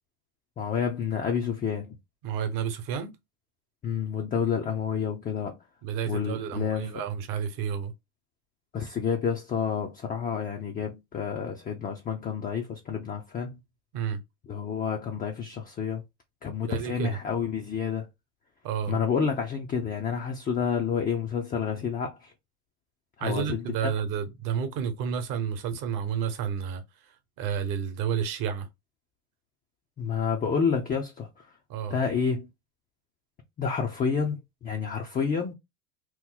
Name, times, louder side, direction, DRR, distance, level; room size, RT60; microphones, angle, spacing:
voice 1, 0.6-1.9 3.8-5.6 6.1-6.9 8.7-13.6 14.5-16.0 16.4-18.1 18.9-22.3 23.2-23.9 30.0-31.5 31.9-32.5 33.6-35.5, left 6 dB, 20° left, 0.5 m, -29 dB
voice 2, 2.2-3.1 5.8-7.9 13.9-14.2 16.7-17.2 18.6-19.0 23.2-26.8 27.4-28.7 31.7-32.0, right 7 dB, 50° right, 1.0 m, -30 dB
3.1 x 2.1 x 3.7 m
supercardioid pair, 105°, 41 cm